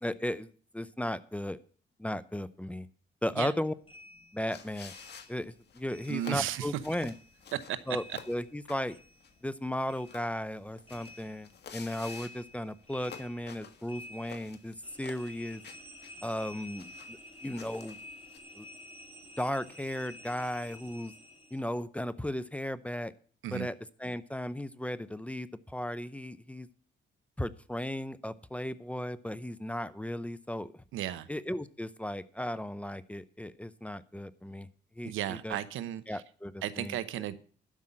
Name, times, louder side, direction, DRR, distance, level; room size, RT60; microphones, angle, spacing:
voice 1, 0.0-1.6 2.0-2.9 3.2-3.7 4.3-4.9 5.3-7.1 7.9-9.0 9.4-15.6 16.2-18.0 18.5-18.7 19.4-21.1 21.5-23.1 23.5-26.7 27.4-30.8 31.3-34.7 35.0-35.6 36.1-37.0, left 1 dB, 5° left, 15 dB, 0.6 m, -36 dB
sound 1, 3.9-6.6 6.8-9.6 9.9-21.7, left 1 dB, 25° left, 3.4 m, -51 dB
sound 2, 4.5-18.4, left 7 dB, 55° left, 1.6 m, -52 dB
voice 2, 6.1-6.7 7.7-7.8 23.4-23.7 30.9-31.3 35.0-36.2 36.6-37.4, right 12 dB, 85° right, 15 dB, 0.9 m, -34 dB
12.0 x 5.5 x 8.7 m, 0.43 s
cardioid pair, 90°, 20 cm